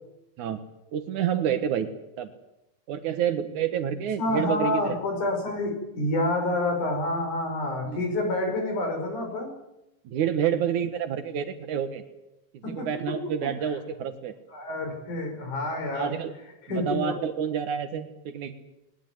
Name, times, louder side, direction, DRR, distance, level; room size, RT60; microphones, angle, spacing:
voice 1, 0.9-1.9 2.2-2.3 2.9-5.0 7.8-8.0 10.1-12.0 12.5-14.3 15.9-16.3 16.7-18.5, right 8 dB, 80° right, 10 dB, 2.8 m, -28 dB
voice 2, 4.2-9.5 12.6-12.9 14.5-16.1 16.7-17.1, left 1 dB, 90° left, 3 dB, 7.6 m, -28 dB
21.0 x 20.0 x 9.4 m, 0.90 s
omnidirectional pair, 3.4 m